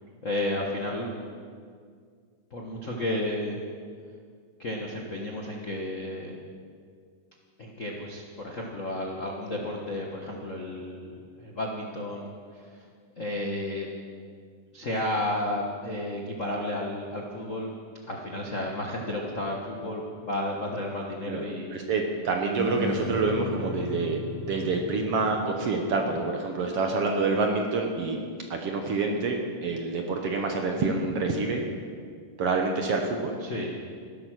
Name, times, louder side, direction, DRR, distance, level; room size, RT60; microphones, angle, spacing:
voice 1, 0.2-1.1 2.5-3.6 4.6-6.3 7.6-12.9 13.2-13.9 14.7-17.7 18.1-21.8 33.4-33.8, left 1 dB, 75° left, -1 dB, 0.7 m, -32 dB
voice 2, 21.3-28.2 28.5-31.7 32.4-33.3, right 3 dB, 60° right, 2 dB, 1.7 m, -27 dB
sound 1, 22.5-26.2, left 3 dB, ahead, 2.4 m, -36 dB
15.5 x 12.5 x 6.3 m, 2.1 s
omnidirectional pair, 3.8 m